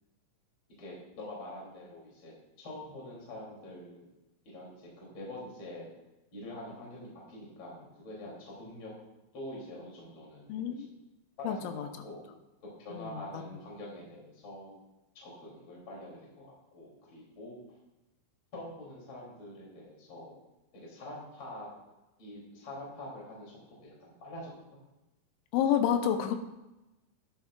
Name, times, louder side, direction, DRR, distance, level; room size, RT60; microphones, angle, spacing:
voice 1, 0.8-4.1 4.4-5.9 6.3-8.9 9.3-10.5 11.4-12.2 12.6-14.7 15.1-17.6 18.5-20.4 20.7-21.7 22.2-24.5, left 1 dB, 30° left, -4 dB, 3.0 m, -45 dB
voice 2, 10.5-10.9 11.4-11.9 12.9-13.4 25.5-26.4, left 9 dB, 80° left, 7 dB, 3.1 m, -29 dB
11.5 x 10.0 x 2.4 m, 0.99 s
omnidirectional pair, 5.5 m